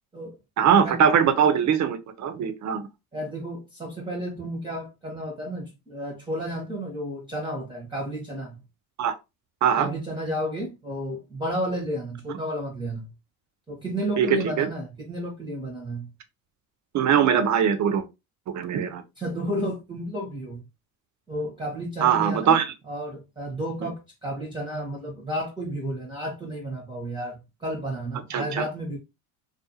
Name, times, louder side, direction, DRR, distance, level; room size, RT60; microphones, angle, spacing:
voice 1, 0.6-2.9 9.0-9.1 9.6-9.9 14.2-14.7 16.9-18.0 18.5-19.0 22.0-22.7 28.3-28.6, right 8 dB, 40° right, 0.7 m, -21 dB
voice 2, 3.1-8.6 9.8-13.1 13.7-16.1 19.2-20.6 21.3-22.6 22.9-29.0, equal, 10° right, 0.9 m, -32 dB
2.4 x 2.4 x 2.7 m
hypercardioid pair, 75°, 46 cm